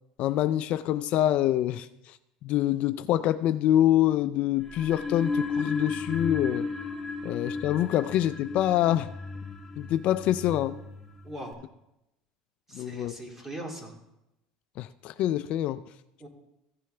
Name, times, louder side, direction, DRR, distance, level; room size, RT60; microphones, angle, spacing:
voice 1, 0.2-2.2 2.4-6.7 7.2-9.1 9.8-10.7 12.7-13.1 14.8-15.8, left 12 dB, 55° left, 13 dB, 0.4 m, -25 dB
sound 1, 4.6-11.5, left 4 dB, 5° left, 2.2 m, -35 dB
voice 2, 11.2-11.6 12.7-13.9 16.2-16.3, right 1 dB, 15° right, 1 dB, 2.3 m, -40 dB
15.0 x 6.9 x 3.3 m, 0.88 s
supercardioid pair, 120°, 2 cm